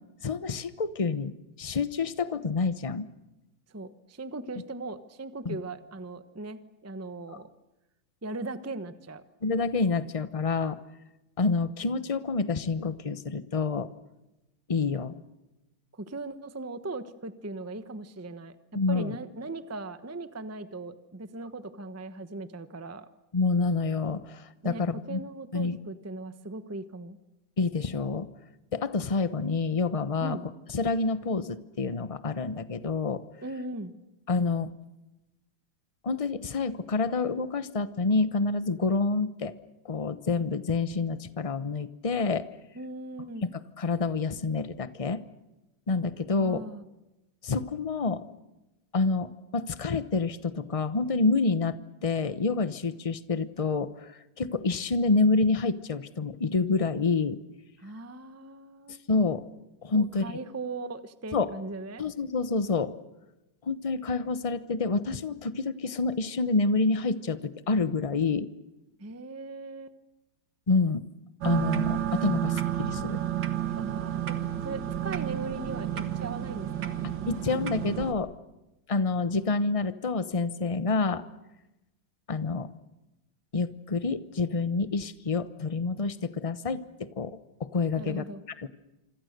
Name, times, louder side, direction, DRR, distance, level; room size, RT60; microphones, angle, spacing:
voice 1, 0.2-3.1 5.4-5.6 9.4-10.8 11.4-13.9 14.7-15.1 18.7-19.1 23.3-25.2 25.5-25.8 27.6-28.3 28.7-30.4 30.7-33.2 34.3-34.7 36.0-39.5 39.8-42.5 43.8-45.2 45.9-46.6 47.4-48.2 48.9-57.4 59.1-59.4 59.8-60.4 61.3-61.5 62.0-62.9 63.6-68.5 70.7-71.1 71.4-73.2 77.0-78.3 78.9-81.2 82.3-82.7 83.5-88.2 88.6-88.7, left 4 dB, 45° left, 13 dB, 0.4 m, -28 dB
voice 2, 3.7-7.5 8.2-9.2 15.9-18.6 18.9-23.1 24.6-27.2 30.2-30.5 33.4-33.9 42.7-43.5 46.4-46.8 57.8-59.0 59.9-62.0 69.0-69.9 73.7-74.4 74.6-77.0 88.0-88.4, right 2 dB, 10° right, 11 dB, 0.8 m, -39 dB
sound 1, 71.4-78.1, right 11 dB, 65° right, 2.3 m, -31 dB
27.0 x 26.0 x 6.7 m, 0.97 s
omnidirectional pair, 2.2 m